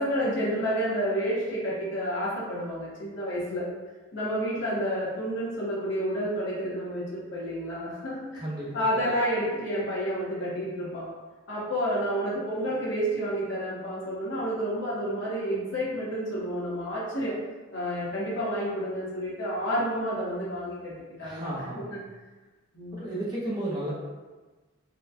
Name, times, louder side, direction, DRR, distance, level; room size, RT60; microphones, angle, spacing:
voice 1, 0.0-3.6 4.1-8.4 8.7-11.0 11.5-17.3 17.7-20.9 21.2-21.5 21.7-22.0 22.7-23.0, equal, 65° left, -7 dB, 1.1 m, -30 dB
voice 2, 8.3-8.9 21.2-22.0 22.9-23.9, right 1 dB, 20° right, -6 dB, 0.6 m, -33 dB
4.1 x 2.2 x 2.6 m, 1.2 s
head